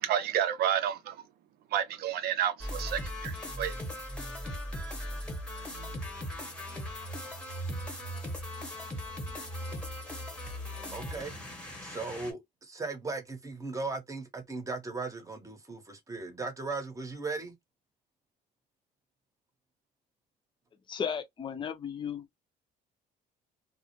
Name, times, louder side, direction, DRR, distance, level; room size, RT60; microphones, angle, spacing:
voice 1, 0.0-1.2 1.7-3.7, right 10 dB, 70° right, 0.5 m, -30 dB
sound 1, 2.6-12.3, equal, 5° left, 0.9 m, -38 dB
voice 2, 10.9-11.3 11.8-17.5, right 3 dB, 20° right, 0.9 m, -37 dB
voice 3, 20.9-22.3, left 7 dB, 30° left, 0.6 m, -35 dB
2.4 x 2.0 x 2.9 m
cardioid pair, 110°, 17 cm